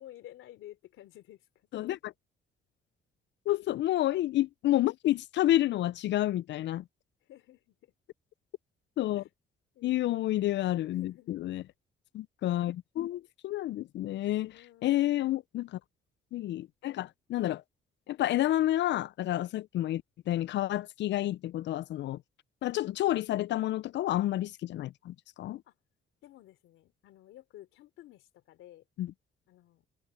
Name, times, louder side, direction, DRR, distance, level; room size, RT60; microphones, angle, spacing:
voice 1, 0.0-1.7 7.2-7.9 9.2-9.3 9.7-10.3 10.9-11.7 14.5-15.1 25.7-25.8 26.2-28.8 29.5-29.9, left 13 dB, 85° left, 3.6 m, -53 dB
voice 2, 1.7-2.1 3.5-6.8 9.0-9.2 9.8-11.6 12.1-14.5 14.8-15.8 16.3-17.6 18.1-22.2 22.6-25.6 29.0-29.1, left 14 dB, 65° left, 0.4 m, -30 dB
cardioid pair, 90°, 20 cm